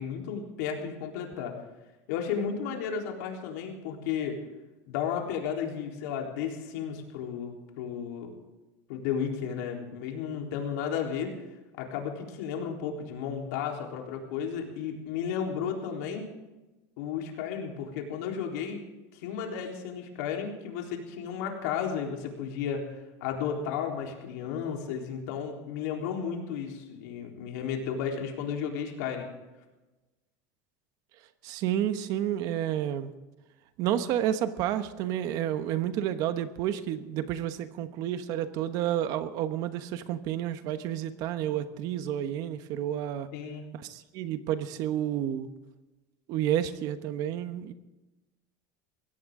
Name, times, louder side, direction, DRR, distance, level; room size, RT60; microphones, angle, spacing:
voice 1, 0.0-1.6 2.1-4.4 4.8-8.4 8.9-11.3 11.8-16.3 17.0-18.8 19.1-29.3 43.3-43.7, left 7 dB, 75° left, 1 dB, 3.8 m, -33 dB
voice 2, 31.4-33.1 33.8-43.3 43.8-45.5 46.3-47.7, right 11 dB, 45° right, 11 dB, 1.1 m, -30 dB
21.5 x 16.5 x 3.8 m, 1.1 s
supercardioid pair, 165°, 9 cm